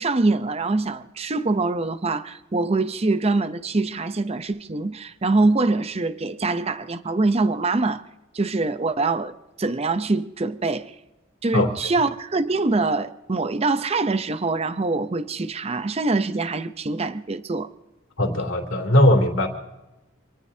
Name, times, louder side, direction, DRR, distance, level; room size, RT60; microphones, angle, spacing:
voice 1, 0.0-8.0 8.3-10.9 11.4-17.7, right 3 dB, 30° right, 0.6 m, -24 dB
voice 2, 18.2-19.5, left 1 dB, 70° left, 2.9 m, -19 dB
27.0 x 19.0 x 2.8 m
head